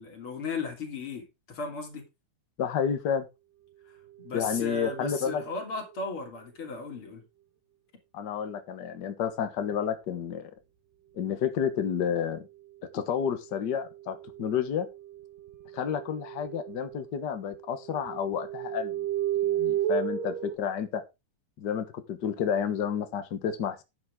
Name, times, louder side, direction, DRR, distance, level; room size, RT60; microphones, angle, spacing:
voice 1, 0.0-2.0 4.2-7.2, left 3 dB, 40° left, 3.6 m, -36 dB
voice 2, 2.6-3.3 4.3-5.4 8.1-10.5 11.1-12.5 12.9-14.9 15.7-19.1 19.4-21.0 21.6-23.8, left 8 dB, 80° left, 0.9 m, -30 dB
sound 1, 4.2-5.7 13.5-17.1 17.3-20.6, right 12 dB, 80° right, 2.8 m, -34 dB
11.0 x 9.5 x 3.6 m
omnidirectional pair, 3.9 m